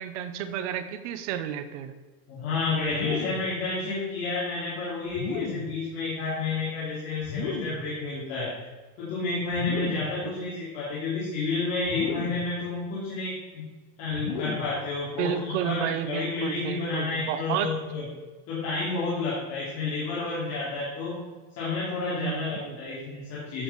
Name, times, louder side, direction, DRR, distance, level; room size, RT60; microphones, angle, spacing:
voice 1, 0.0-1.9 15.2-17.7 22.2-22.8, right 9 dB, 55° right, 11 dB, 0.9 m, -31 dB
voice 2, 2.3-8.6 9.0-13.6 14.0-18.1 18.5-21.3 21.5-23.6, left 3 dB, 35° left, -8 dB, 2.9 m, -30 dB
sound 1, 2.9-3.6 5.1-5.8 7.2-8.0 9.5-10.2 11.8-12.6 14.1-14.9, left 5 dB, 50° left, 1.3 m, -34 dB
13.5 x 6.8 x 4.1 m, 1.3 s
supercardioid pair, 165°, 43 cm